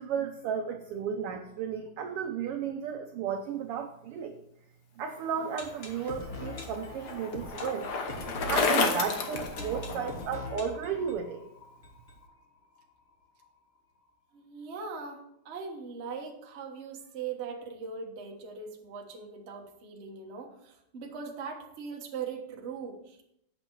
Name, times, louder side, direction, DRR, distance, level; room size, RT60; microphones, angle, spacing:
voice 1, 0.0-4.4 5.0-7.9 8.5-11.5, right 7 dB, 80° right, 5 dB, 1.2 m, -34 dB
sound 1, 5.1-12.8 13.1-13.2 13.4-13.5 14.0-14.1, left 1 dB, 35° left, 1.1 m, -43 dB
Bicycle, 5.9-10.3, left 4 dB, 75° left, 0.9 m, -31 dB
voice 2, 14.3-23.2, right 5 dB, 50° right, 0 dB, 0.8 m, -40 dB
8.8 x 7.0 x 4.6 m, 0.77 s
omnidirectional pair, 3.3 m